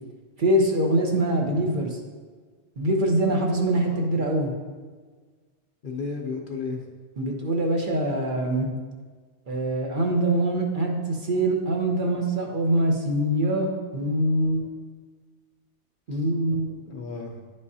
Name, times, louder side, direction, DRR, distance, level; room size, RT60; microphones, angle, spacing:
voice 1, 0.4-2.0 2.8-4.5 7.2-8.7 9.5-13.7 13.9-14.7 16.1-16.8, right 1 dB, 45° right, 1 dB, 1.0 m, -24 dB
voice 2, 3.9-4.3 5.8-6.8 16.1-16.2 16.9-17.4, left 4 dB, 55° left, 1 dB, 0.7 m, -34 dB
9.9 x 5.3 x 2.7 m, 1.5 s
omnidirectional pair, 1.2 m